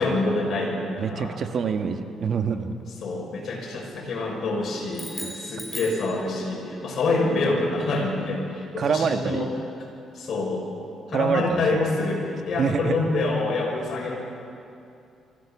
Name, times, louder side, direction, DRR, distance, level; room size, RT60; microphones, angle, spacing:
voice 1, 0.0-1.4 3.0-9.5 10.1-10.7 11.1-14.2, left 2 dB, 60° left, -1 dB, 5.9 m, -26 dB
voice 2, 1.0-2.8 5.2-5.4 8.8-9.5 11.1-11.9 12.6-13.0, right 6 dB, 55° right, 7 dB, 1.4 m, -26 dB
sound 1, 4.9-6.7, equal, 5° left, 3.9 m, -38 dB
25.0 x 15.5 x 7.1 m, 2.6 s
cardioid pair, 90°, 0 cm